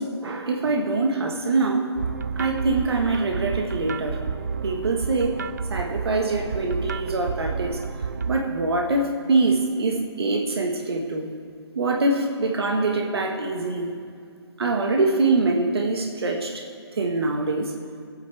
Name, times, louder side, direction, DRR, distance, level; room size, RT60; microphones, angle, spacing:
voice 1, 0.0-1.9 2.4-4.2 4.6-5.3 5.7-7.8 8.2-11.3 11.7-13.9 14.6-16.6 16.9-17.7, right 3 dB, 65° right, 1 dB, 1.6 m, -24 dB
sound 1, 2.0-8.4, right 5 dB, 40° right, 0.4 m, -30 dB
23.5 x 9.2 x 3.4 m, 2.3 s
hypercardioid pair, 175°, 14 cm